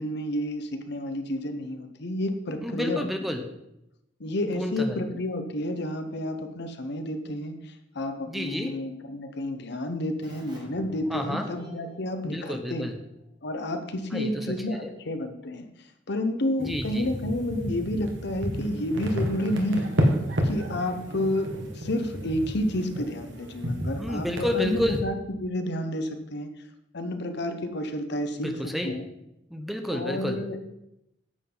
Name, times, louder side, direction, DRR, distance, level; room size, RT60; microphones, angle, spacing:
voice 1, 0.0-3.1 4.2-12.9 13.4-15.7 16.1-19.9 20.4-26.5 26.9-28.5 28.8-29.1 29.9-30.7, left 1 dB, 65° left, 7 dB, 1.0 m, -30 dB
voice 2, 2.6-3.4 4.5-5.0 8.3-8.7 11.1-11.5 12.3-13.0 14.1-14.9 16.6-17.1 24.0-25.0 28.4-28.9 29.5-30.4, left 1 dB, ahead, 4 dB, 0.8 m, -30 dB
Keyboard (musical), 10.2-13.6, equal, 25° right, 1.7 m, -48 dB
sound 1, 16.6-25.0, equal, 75° right, 1.6 m, -31 dB
9.9 x 7.7 x 3.9 m, 0.84 s
head